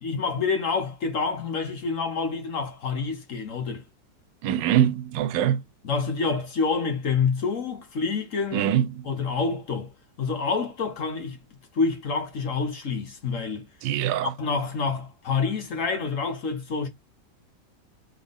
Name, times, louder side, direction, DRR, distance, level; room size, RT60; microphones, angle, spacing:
voice 1, 0.0-3.8 5.8-8.7 9.0-9.9 10.2-11.4 11.7-13.7 14.2-16.9, left 4 dB, 50° left, 1.3 m, -27 dB
voice 2, 4.4-5.6 8.5-9.1 13.8-14.3, right 10 dB, 85° right, 1.3 m, -23 dB
3.9 x 3.8 x 3.5 m
omnidirectional pair, 1.9 m